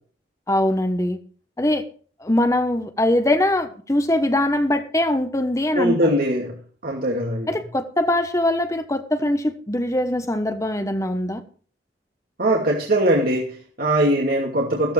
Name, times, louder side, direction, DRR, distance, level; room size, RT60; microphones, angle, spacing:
voice 1, 0.5-1.2 1.6-1.8 2.2-6.1 7.5-11.4, left 1 dB, 15° left, 8 dB, 1.1 m, -22 dB
voice 2, 5.7-6.5 6.8-7.5 12.4-14.9, right 1 dB, 50° right, 0 dB, 2.6 m, -21 dB
15.5 x 13.5 x 3.4 m, 0.42 s
head